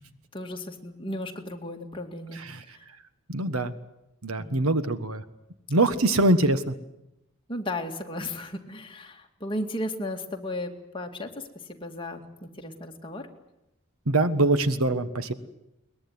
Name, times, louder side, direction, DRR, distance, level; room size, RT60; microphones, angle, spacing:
voice 1, 0.3-2.8 4.4-4.7 7.5-13.3 14.8-15.0, left 1 dB, 25° left, 2 dB, 2.3 m, -35 dB
voice 2, 3.3-3.7 4.2-5.2 5.7-6.7 14.1-15.3, right 2 dB, 85° right, 12 dB, 1.5 m, -23 dB
22.0 x 20.5 x 9.7 m, 0.87 s
head